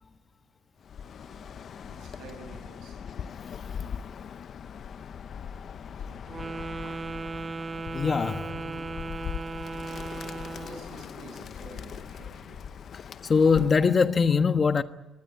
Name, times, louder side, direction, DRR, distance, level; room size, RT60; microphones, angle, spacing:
Bird, 0.8-13.9, left 7 dB, 60° left, 0.8 m, -40 dB
voice 1, 1.2-3.1 6.0-6.6 8.4-9.0 10.6-12.7, right 3 dB, 90° right, 6.9 m, -48 dB
Wind instrument woodwind instrument, 6.3-10.9, right 3 dB, 30° right, 0.7 m, -36 dB
voice 2, 7.9-8.5 13.3-14.8, left 5 dB, 40° left, 1.4 m, -21 dB
24.5 x 19.0 x 9.4 m
cardioid pair, 90°, 0 cm